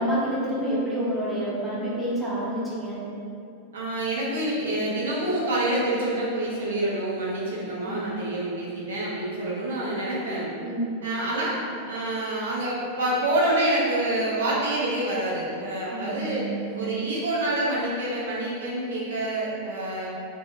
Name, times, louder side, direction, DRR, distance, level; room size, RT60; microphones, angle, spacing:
voice 1, 0.0-3.0 7.8-8.1 10.6-10.9 15.9-16.7, right 1 dB, ahead, -9 dB, 0.7 m, -28 dB
voice 2, 3.7-10.5 11.0-11.6 11.9-16.5 16.7-20.1, right 1 dB, 65° right, -5 dB, 0.4 m, -27 dB
2.6 x 2.2 x 2.4 m, 2.5 s
figure-of-eight pair, 90°, 0 cm